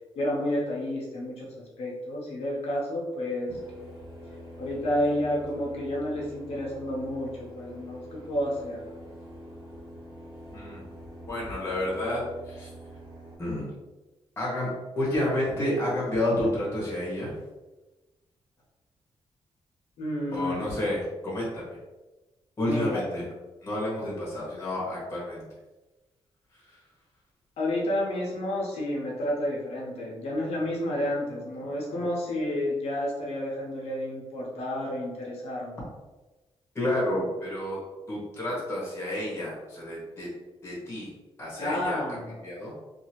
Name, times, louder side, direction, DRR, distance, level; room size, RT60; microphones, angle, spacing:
voice 1, 0.2-3.9 4.6-8.9 20.0-20.7 22.6-23.1 27.6-35.8 41.6-42.3, left 1 dB, 85° left, -3 dB, 0.7 m, -30 dB
sound 1, 3.5-13.4, equal, 35° right, 1.4 m, -45 dB
voice 2, 11.3-12.7 13.4-13.7 14.4-14.7 15.0-17.4 20.3-21.8 22.6-23.3 23.6-25.5 26.5-26.8 36.7-37.8 38.1-40.3 40.6-41.1 41.4-42.0 42.4-42.7, left 1 dB, 25° left, -6 dB, 1.2 m, -30 dB
2.7 x 2.6 x 2.8 m, 1.1 s
wide cardioid pair, 165°, 10 cm